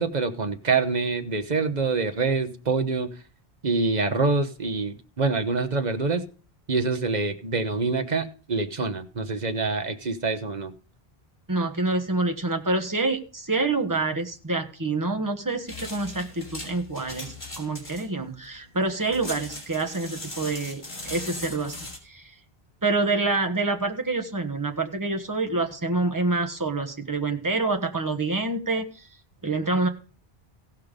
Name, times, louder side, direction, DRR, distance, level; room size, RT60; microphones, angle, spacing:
voice 1, 0.0-3.1 3.6-6.2 6.7-10.7, right 4 dB, 45° right, 9 dB, 1.1 m, -26 dB
voice 2, 11.5-21.7 22.0-22.3 22.8-29.1 29.4-29.9, right 3 dB, 20° right, 4 dB, 1.4 m, -27 dB
sound 1, 15.7-22.0, left 2 dB, 50° left, 3.2 m, -39 dB
17.0 x 5.7 x 5.1 m, 0.38 s
omnidirectional pair, 1.0 m